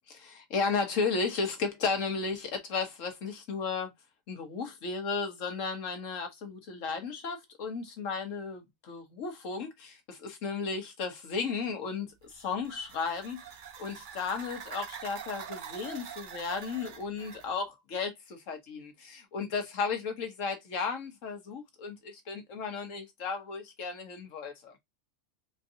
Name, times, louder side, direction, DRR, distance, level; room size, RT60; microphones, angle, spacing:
voice 1, 0.1-3.9 4.3-13.4 13.8-24.8, left 5 dB, 80° left, 1.4 m, -34 dB
sound 1, 12.2-17.5, right 7 dB, 50° right, 0.6 m, -45 dB
4.4 x 2.7 x 2.6 m
omnidirectional pair, 1.3 m